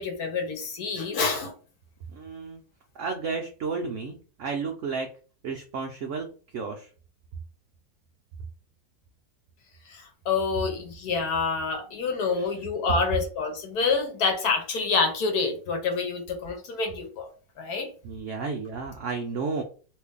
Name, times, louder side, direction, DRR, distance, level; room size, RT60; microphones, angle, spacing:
voice 1, 0.0-1.5 9.9-17.3 17.6-17.9, left 4 dB, 65° left, 4 dB, 1.3 m, -27 dB
voice 2, 2.1-2.6 3.0-5.1 5.4-6.3 6.5-6.9 12.3-12.5 18.0-19.6, right 4 dB, 85° right, 3 dB, 0.6 m, -32 dB
3.2 x 2.5 x 3.5 m, 0.38 s
omnidirectional pair, 1.9 m